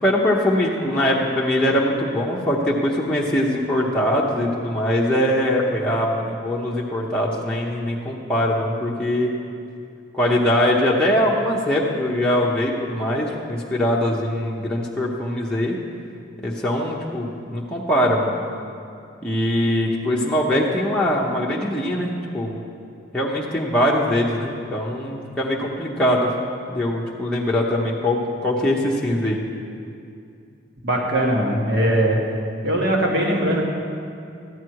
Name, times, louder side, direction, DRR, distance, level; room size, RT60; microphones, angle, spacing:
voice 1, 0.0-9.3 10.1-15.8 16.4-18.5 19.2-22.6 23.1-26.3 26.7-29.4, left 1 dB, 5° left, -5 dB, 0.9 m, -22 dB
voice 2, 30.8-32.2 32.6-33.6, right 1 dB, 65° right, -1 dB, 1.8 m, -20 dB
13.5 x 9.2 x 4.7 m, 2.4 s
head